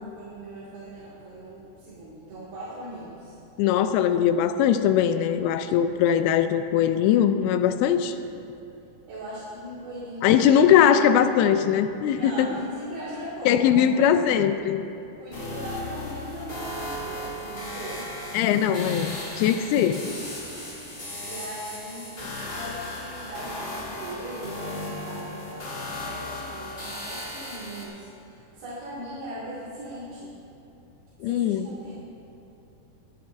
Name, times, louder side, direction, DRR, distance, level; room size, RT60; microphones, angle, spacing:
voice 1, 0.2-3.4 9.1-10.7 12.1-13.6 13.9-14.0 15.2-18.6 20.6-30.3 31.2-31.9, right 1 dB, 70° right, -11 dB, 4.1 m, -39 dB
voice 2, 3.6-8.2 10.2-12.5 13.5-14.8 18.3-20.0 31.2-31.7, left 9 dB, 85° left, 10 dB, 2.3 m, -21 dB
sound 1, 15.3-27.8, left 1 dB, 30° left, 1.9 m, -36 dB
21.5 x 11.5 x 2.6 m, 2.9 s
omnidirectional pair, 4.7 m